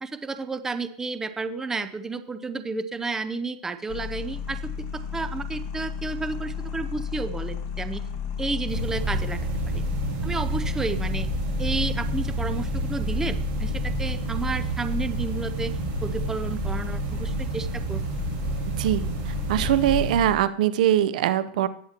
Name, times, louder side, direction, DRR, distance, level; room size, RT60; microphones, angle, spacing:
voice 1, 0.0-4.6 5.1-8.0 8.4-9.4 9.7-9.8 10.2-11.3 11.6-15.7 16.0-18.0, right 3 dB, 10° right, 11 dB, 0.6 m, -31 dB
sound 1, 3.9-20.4, left 7 dB, 50° left, 1.8 m, -33 dB
sound 2, 8.7-20.2, right 3 dB, 55° right, 4.2 m, -30 dB
voice 2, 19.5-21.7, right 11 dB, 70° right, 14 dB, 0.7 m, -22 dB
18.5 x 7.3 x 2.9 m, 0.63 s
supercardioid pair, 135°, 4 cm